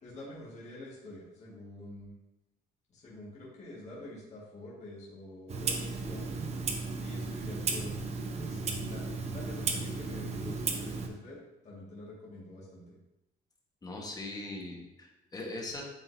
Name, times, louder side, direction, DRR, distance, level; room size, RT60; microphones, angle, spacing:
voice 1, 0.0-2.1 2.9-6.4 7.0-8.1 8.3-13.0, left 1 dB, 40° left, -6 dB, 1.9 m, -47 dB
Clock, 5.5-11.1, right 4 dB, 40° right, 0.8 m, -34 dB
voice 2, 13.8-15.8, left 2 dB, 20° left, 0 dB, 1.4 m, -40 dB
8.9 x 3.9 x 2.7 m, 0.92 s
cardioid pair, 110°, 17 cm